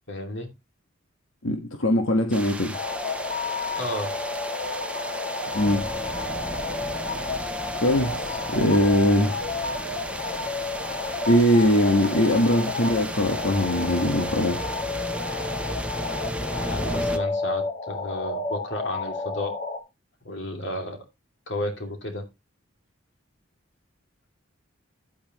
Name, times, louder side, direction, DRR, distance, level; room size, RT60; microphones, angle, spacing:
voice 1, 0.1-0.5 3.8-4.1 16.6-19.5 20.2-21.0 21.5-22.3, left 1 dB, 60° left, 2.7 m, -32 dB
voice 2, 1.4-2.8 5.5-5.8 7.8-9.3 11.3-14.6, left 1 dB, 85° left, 1.5 m, -21 dB
sound 1, 2.3-17.2, right 1 dB, 5° right, 0.8 m, -34 dB
sound 2, 2.7-19.8, left 3 dB, 35° left, 1.7 m, -31 dB
10.0 x 8.8 x 3.1 m
head